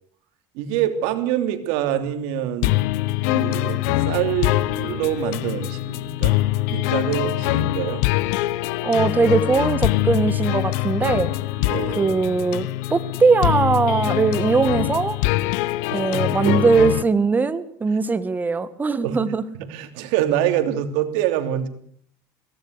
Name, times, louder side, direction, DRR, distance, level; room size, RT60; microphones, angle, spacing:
voice 1, 0.5-2.9 3.3-6.4 6.7-8.0 11.6-12.0 15.9-16.6 19.0-19.2 19.5-21.7, right 11 dB, 80° right, 8 dB, 3.1 m, -25 dB
sound 1, 2.6-17.0, left 18 dB, 85° left, 1.0 m, -23 dB
voice 2, 8.8-11.3 12.0-15.2 15.9-19.4, right 4 dB, 20° right, 12 dB, 1.8 m, -20 dB
22.5 x 18.0 x 8.3 m, 0.62 s
cardioid pair, 125°, 9 cm